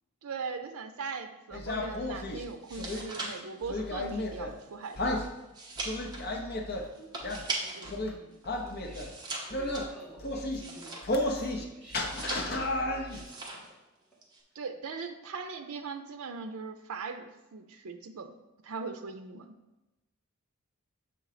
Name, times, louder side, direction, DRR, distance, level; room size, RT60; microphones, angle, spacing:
voice 1, 0.2-5.3 7.7-8.0 14.6-18.3 18.6-19.5, right 4 dB, 80° right, 7 dB, 0.5 m, -40 dB
sound 1, 1.5-3.0 3.6-4.5 5.0-5.3 5.8-6.8 7.2-7.4 7.9-8.1 8.5-9.1 9.5-9.9 10.2-10.6 11.0-11.6 11.9-13.2, left 1 dB, 45° left, 0.7 m, -33 dB
sound 2, 2.5-8.0 8.3-11.4 11.8-12.7 13.1-13.7 14.0-14.4, right 2 dB, 20° right, 0.9 m, -40 dB
voice 2, 6.7-8.4 8.6-9.2 9.5-13.6, right 2 dB, 5° left, -8 dB, 2.2 m, -53 dB
6.9 x 3.8 x 4.9 m, 1.0 s
head